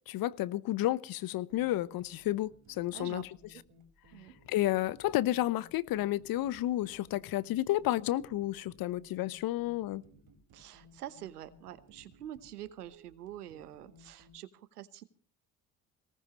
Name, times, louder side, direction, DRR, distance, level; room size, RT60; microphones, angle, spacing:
voice 1, 0.1-3.3 4.5-10.0, left 15 dB, 50° left, 0.9 m, -31 dB
sound 1, 1.5-14.4, equal, 55° right, 4.9 m, -60 dB
voice 2, 2.9-3.2 3.5-3.6 4.1-4.3 10.5-15.0, right 12 dB, 85° right, 1.1 m, -46 dB
22.0 x 18.5 x 3.1 m
hypercardioid pair, 60°, 45 cm